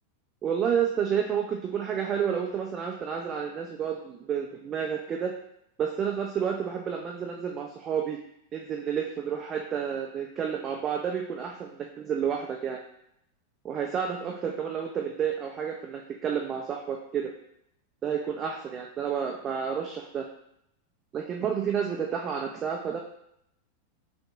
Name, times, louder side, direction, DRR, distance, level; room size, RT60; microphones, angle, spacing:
voice 1, 0.4-5.3 5.8-8.2 8.5-12.8 13.6-17.3 18.0-20.3 21.1-23.0, right 7 dB, 25° right, 0 dB, 0.4 m, -30 dB
5.7 x 2.7 x 2.3 m, 0.77 s
figure-of-eight pair, 90°, 0 cm